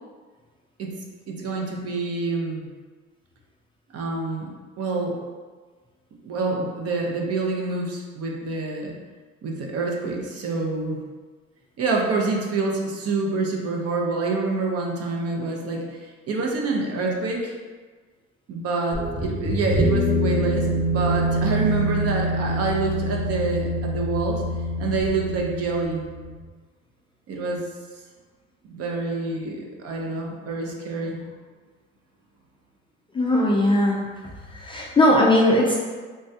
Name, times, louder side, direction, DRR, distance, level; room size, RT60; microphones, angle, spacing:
voice 1, 1.3-2.7 3.9-4.5 4.8-5.2 6.2-9.0 9.4-11.0 11.8-17.5 18.5-24.4 24.8-26.0 27.3-27.6 28.6-31.2, right 3 dB, 50° right, 0 dB, 0.6 m, -27 dB
sound 1, 18.9-26.3, equal, 10° right, 1.0 m, -25 dB
voice 2, 33.1-34.0 34.6-35.7, left 1 dB, 15° left, -3 dB, 0.3 m, -18 dB
3.3 x 2.2 x 2.7 m, 1.4 s
supercardioid pair, 90°, 31 cm